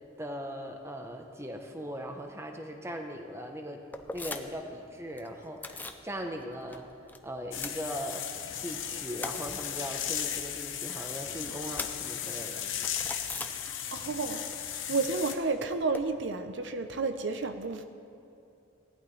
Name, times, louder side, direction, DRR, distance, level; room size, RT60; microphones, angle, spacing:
voice 1, 0.2-3.8 4.1-6.9 7.2-8.3 8.6-12.7 14.9-15.0, equal, 15° right, 4 dB, 0.8 m, -39 dB
sound 1, 3.9-4.7 5.0-6.1 6.4-7.2 7.4-8.5 8.8-14.2 14.4-16.0, left 2 dB, 10° left, 0.4 m, -42 dB
sound 2, 7.5-15.4, left 9 dB, 70° left, 0.9 m, -36 dB
voice 2, 13.5-14.4 14.9-17.8, right 4 dB, 60° right, 8 dB, 0.6 m, -31 dB
18.0 x 11.0 x 3.2 m, 2.7 s
head